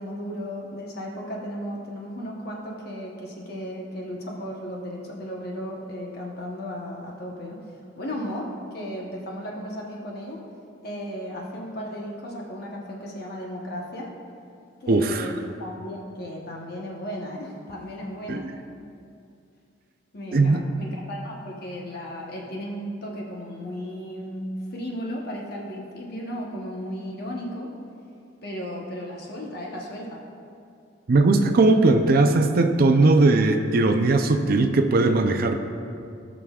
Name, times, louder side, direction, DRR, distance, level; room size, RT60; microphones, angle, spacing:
voice 1, 0.0-7.6 8.0-10.4 10.8-14.1 14.8-18.5 20.1-27.7 28.4-30.2, equal, 55° left, -2 dB, 1.0 m, -35 dB
voice 2, 14.9-15.3 18.3-18.5 20.3-20.7 31.1-35.6, right 2 dB, 50° right, 5 dB, 0.5 m, -19 dB
17.5 x 6.2 x 2.4 m, 2.5 s
head